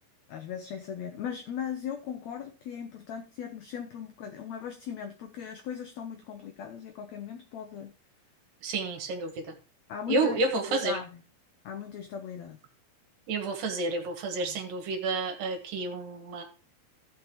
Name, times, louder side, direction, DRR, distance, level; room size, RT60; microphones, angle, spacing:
voice 1, 0.3-7.9 9.9-11.2 11.6-12.6 14.4-14.5, left 8 dB, 90° left, 6 dB, 1.5 m, -38 dB
voice 2, 8.6-9.3 10.1-11.0 13.3-16.4, right 3 dB, 70° right, 4 dB, 3.0 m, -30 dB
16.0 x 6.1 x 3.0 m, 0.33 s
omnidirectional pair, 4.2 m